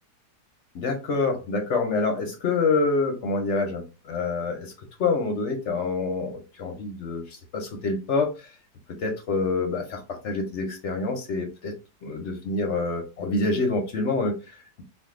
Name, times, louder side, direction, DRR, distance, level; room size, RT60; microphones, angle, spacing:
voice 1, 0.7-4.7 5.0-8.3 9.0-11.7 12.0-14.5, left 3 dB, 60° left, 4 dB, 0.8 m, -26 dB
2.6 x 2.4 x 3.5 m, 0.29 s
omnidirectional pair, 1.8 m